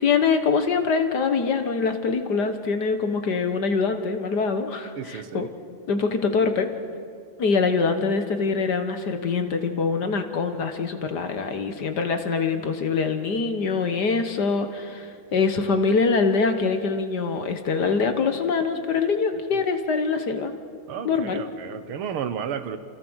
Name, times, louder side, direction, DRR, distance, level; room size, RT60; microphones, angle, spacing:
voice 1, 0.0-5.5 5.9-6.7 7.4-20.5 21.1-21.4, left 4 dB, 55° left, 7 dB, 1.8 m, -24 dB
voice 2, 5.0-5.5 20.9-22.8, right 8 dB, 85° right, 10 dB, 2.1 m, -32 dB
28.5 x 27.5 x 6.4 m, 2.3 s
omnidirectional pair, 2.3 m